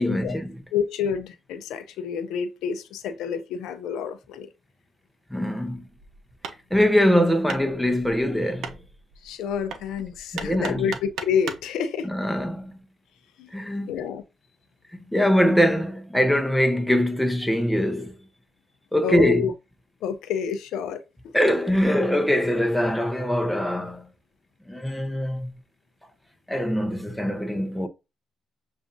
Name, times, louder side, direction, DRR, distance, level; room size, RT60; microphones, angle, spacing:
voice 1, 0.0-0.6 5.3-5.8 6.7-8.8 10.3-10.9 12.0-12.7 13.5-13.9 14.9-18.1 18.9-19.5 21.3-24.1 24.7-25.5 26.5-27.9, equal, 5° left, 0.7 m, -23 dB
voice 2, 0.7-4.5 9.2-12.1 13.4-13.5 13.9-14.2 19.0-19.5 20.0-21.0, left 7 dB, 85° left, 0.6 m, -28 dB
Hammer, 5.9-11.7, right 6 dB, 75° right, 0.7 m, -39 dB
7.0 x 2.5 x 2.5 m
cardioid pair, 90°, 0 cm